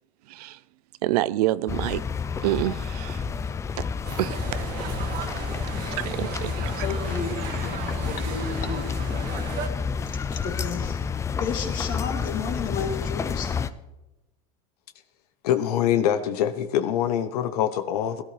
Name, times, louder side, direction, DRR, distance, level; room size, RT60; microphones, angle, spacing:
voice 1, 0.3-0.6 1.0-2.0 2.4-3.3 4.2-4.4 6.0-6.9, right 15 dB, 85° right, 0.5 m, -27 dB
sound 1, 1.7-13.7, left 6 dB, 15° left, 0.4 m, -30 dB
sound 2, 4.0-9.7, right 6 dB, 50° right, 1.7 m, -36 dB
voice 2, 6.6-7.4 7.6-7.8 8.0-9.0 10.4-11.0 11.4-13.5, left 6 dB, 45° left, 2.7 m, -32 dB
voice 3, 15.4-18.2, left 10 dB, 85° left, 0.9 m, -24 dB
17.5 x 12.5 x 3.3 m
supercardioid pair, 135°, 19 cm